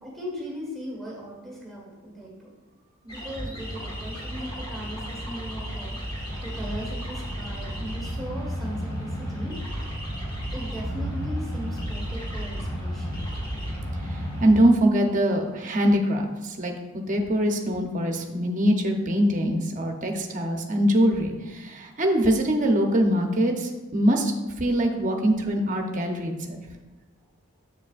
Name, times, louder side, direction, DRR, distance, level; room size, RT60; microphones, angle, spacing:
voice 1, 0.0-2.5 3.0-6.0 6.4-9.5 10.5-13.1, equal, ahead, -4 dB, 1.5 m, -38 dB
sound 1, 3.1-14.5, equal, 20° left, 1.5 m, -32 dB
voice 2, 14.1-24.3 24.6-26.6, equal, 35° right, 3 dB, 0.8 m, -23 dB
7.4 x 7.1 x 2.5 m, 1.1 s
head